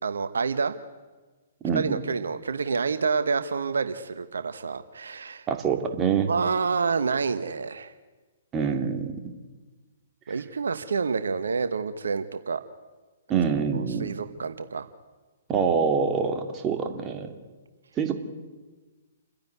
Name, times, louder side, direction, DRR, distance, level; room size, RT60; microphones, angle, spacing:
voice 1, 0.0-0.7 1.7-5.5 6.3-7.9 10.3-12.6 13.7-14.9, right 5 dB, 75° right, 10 dB, 1.1 m, -28 dB
voice 2, 1.6-2.0 5.5-6.3 8.5-9.1 13.3-14.1 15.5-17.3 18.0-18.1, right 6 dB, 20° right, 4 dB, 2.5 m, -25 dB
29.5 x 10.5 x 9.4 m, 1.3 s
hypercardioid pair, 125°, 0 cm